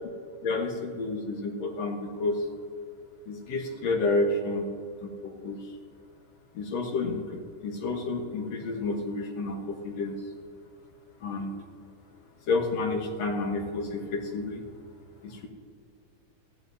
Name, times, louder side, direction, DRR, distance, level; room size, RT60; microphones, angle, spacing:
voice 1, 0.4-2.5 3.3-4.7 5.0-5.6 6.5-10.2 11.2-11.5 12.5-14.6 15.2-15.5, left 3 dB, 60° left, 2 dB, 2.2 m, -30 dB
20.0 x 14.0 x 2.7 m, 2.3 s
omnidirectional pair, 3.7 m